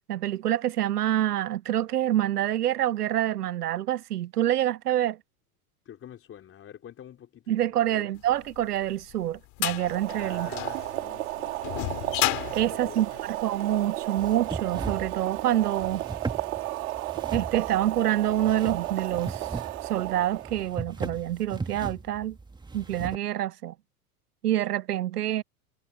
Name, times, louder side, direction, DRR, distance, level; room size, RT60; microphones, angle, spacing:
voice 1, 0.1-5.2 7.5-10.5 12.5-16.0 17.3-19.5 19.8-22.4 22.7-23.7 24.4-25.4, right 12 dB, 90° right, 0.8 m, -27 dB
voice 2, 5.9-8.1 10.2-11.8 12.9-13.2, left 10 dB, 30° left, 4.3 m, -46 dB
sound 1, 8.5-13.9, left 26 dB, 50° left, 3.5 m, -32 dB
Boiling, 9.7-20.7, right 16 dB, 70° right, 2.9 m, -34 dB
sound 2, 14.2-23.2, right 4 dB, 10° right, 2.0 m, -38 dB
hypercardioid pair, 110°, 45 cm